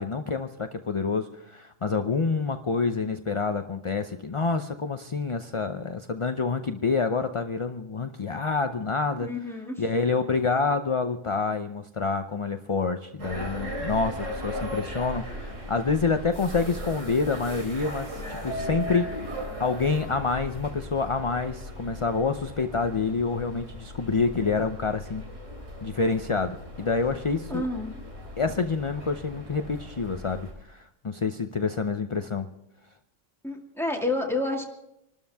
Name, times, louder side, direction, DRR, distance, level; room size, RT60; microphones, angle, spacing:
voice 1, 0.0-9.3 9.8-25.2 25.8-27.6 28.4-32.5, left 4 dB, 35° left, 7 dB, 0.5 m, -27 dB
voice 2, 9.2-9.8 27.5-27.9 33.4-34.6, left 2 dB, ahead, 0 dB, 2.2 m, -29 dB
sound 1, 13.2-30.5, equal, 75° right, 3.3 m, -37 dB
26.5 x 13.0 x 3.5 m, 0.81 s
omnidirectional pair, 1.3 m